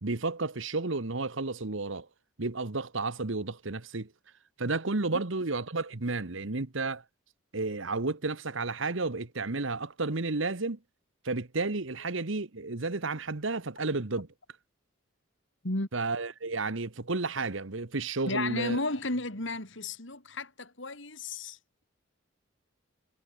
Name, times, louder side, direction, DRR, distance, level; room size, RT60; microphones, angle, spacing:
voice 1, 0.0-2.1 2.4-4.1 4.6-7.0 7.5-10.8 11.2-14.3 15.9-18.8, right 3 dB, 70° right, 1.3 m, -32 dB
voice 2, 18.3-21.8, left 2 dB, 65° left, 3.5 m, -33 dB
head